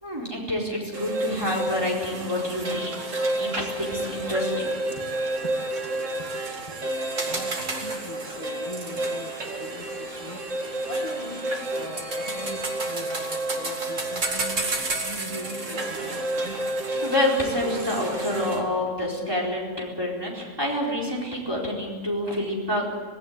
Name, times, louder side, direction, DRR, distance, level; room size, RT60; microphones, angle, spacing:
voice 1, 0.0-2.9 3.3-4.7 17.0-22.9, left 1 dB, 15° right, -3 dB, 4.4 m, -28 dB
sound 1, 0.9-18.6, right 2 dB, 65° right, 2.5 m, -30 dB
voice 2, 5.4-5.9 7.2-16.6 22.2-22.4, left 1 dB, 25° left, -1 dB, 2.1 m, -41 dB
sound 2, 10.7-15.1, left 3 dB, 45° left, 5.0 m, -46 dB
18.5 x 17.0 x 9.6 m, 1.5 s
omnidirectional pair, 1.4 m